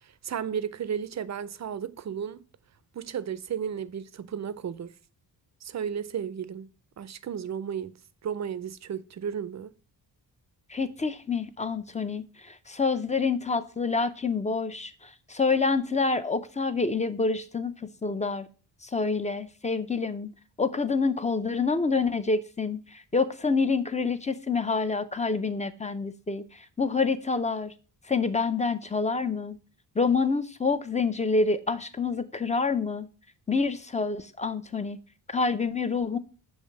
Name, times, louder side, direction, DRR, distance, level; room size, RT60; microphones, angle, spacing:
voice 1, 0.0-2.4 2.9-4.9 5.6-6.7 7.0-7.9 8.2-9.7, right 8 dB, 40° right, 0.5 m, -34 dB
voice 2, 10.7-17.7 18.0-18.5 18.8-20.3 20.6-27.7 28.1-29.6 30.0-33.1 33.5-35.0 35.3-36.2, left 4 dB, 15° left, 0.4 m, -27 dB
6.4 x 3.2 x 5.8 m
cardioid pair, 95°, 43 cm